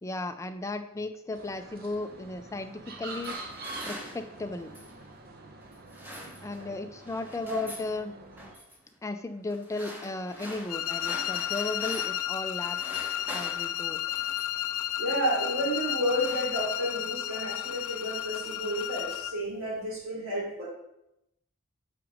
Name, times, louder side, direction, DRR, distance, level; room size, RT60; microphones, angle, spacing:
voice 1, 0.0-3.4 3.9-4.7 6.4-8.1 9.0-12.8 13.3-14.0, left 2 dB, 15° left, 8 dB, 0.4 m, -35 dB
sound 1, 1.3-8.5, right 3 dB, 45° right, 0.9 m, -45 dB
sound 2, 2.8-5.0 5.7-6.8 7.0-7.9 8.4-8.8 9.5-12.3 12.6-14.7 15.4-15.7 16.0-17.0, equal, 10° right, 1.1 m, -44 dB
sound 3, 10.7-19.4, left 13 dB, 85° left, 0.4 m, -33 dB
voice 2, 15.0-20.7, equal, 70° right, -5 dB, 3.0 m, -31 dB
5.7 x 5.2 x 5.1 m, 0.84 s
head